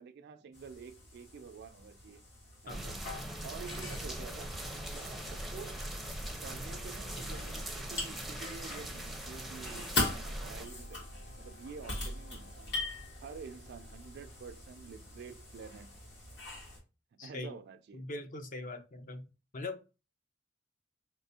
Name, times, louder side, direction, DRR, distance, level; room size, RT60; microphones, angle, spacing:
voice 1, 0.0-2.2 2.6-3.1 3.4-4.6 4.9-5.8 6.4-12.7 13.2-16.0 17.1-18.1, right 5 dB, 55° right, 0.3 m, -49 dB
sound 1, 0.5-16.8, left 2 dB, 65° left, 1.8 m, -42 dB
sound 2, 2.7-10.7, right 1 dB, ahead, 0.6 m, -41 dB
sound 3, 4.3-14.7, left 2 dB, 85° left, 0.9 m, -59 dB
voice 2, 17.2-17.6 17.9-19.3 19.5-19.8, left 2 dB, 45° left, 0.7 m, -41 dB
4.1 x 3.4 x 2.7 m
head